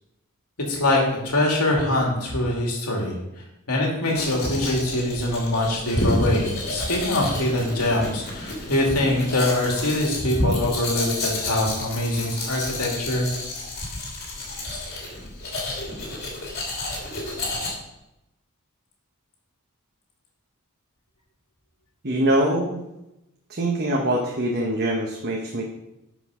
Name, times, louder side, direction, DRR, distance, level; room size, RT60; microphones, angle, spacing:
voice 1, 0.7-3.2 3.7-13.3 14.9-15.0, left 1 dB, 90° left, -1 dB, 2.5 m, -23 dB
Domestic sounds home sounds, 4.1-17.7, left 2 dB, 45° left, 3.0 m, -32 dB
voice 2, 22.0-22.8 23.5-25.6, right 1 dB, 45° right, 0 dB, 1.2 m, -23 dB
11.5 x 5.4 x 5.0 m, 0.90 s
head